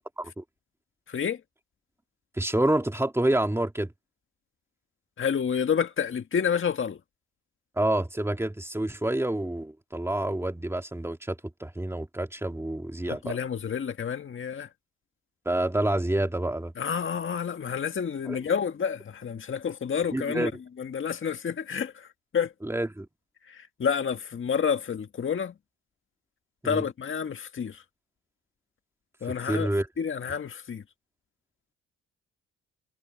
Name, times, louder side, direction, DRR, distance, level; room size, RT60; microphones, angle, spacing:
voice 1, 1.1-1.4 5.2-7.0 13.0-14.7 16.8-20.5 20.8-22.1 22.3-22.5 23.5-25.5 26.6-27.8 29.2-29.7 30.0-30.8, left 7 dB, 40° left, 1.8 m, -29 dB
voice 2, 2.4-3.9 7.8-13.4 15.4-16.7 18.3-18.4 20.1-20.5 22.6-23.1 26.6-26.8 29.2-29.9, right 1 dB, 10° right, 2.9 m, -28 dB
cardioid pair, 90°, 30 cm